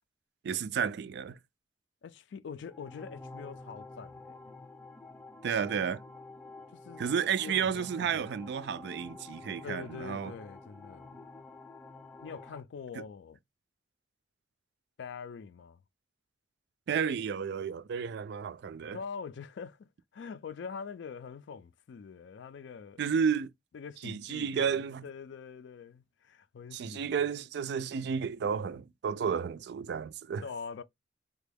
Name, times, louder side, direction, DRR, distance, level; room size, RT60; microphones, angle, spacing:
voice 1, 0.4-1.4 5.4-6.0 7.0-10.3 13.0-13.1 16.9-19.0 23.0-23.5 24.0-25.0 26.7-30.4, right 7 dB, 65° right, 0.3 m, -32 dB
voice 2, 2.0-4.5 6.7-8.5 9.6-11.2 12.2-13.4 15.0-15.8 18.9-23.0 23.7-27.0 30.4-30.8, left 6 dB, 70° left, 0.3 m, -44 dB
sound 1, 2.6-12.6, left 3 dB, 10° left, 0.5 m, -49 dB
3.4 x 2.2 x 3.4 m
head